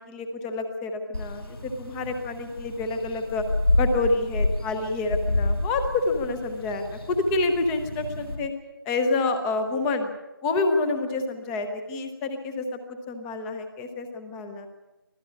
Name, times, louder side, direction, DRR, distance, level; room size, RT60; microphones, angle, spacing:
voice 1, 0.0-3.4 3.8-8.5 8.9-10.1 10.4-12.8 13.1-14.7, left 3 dB, 5° left, 7 dB, 0.7 m, -28 dB
sound 1, 1.1-8.4, left 2 dB, 80° left, 5.7 m, -29 dB
24.5 x 16.0 x 8.5 m, 1.0 s
figure-of-eight pair, 165°, 12 cm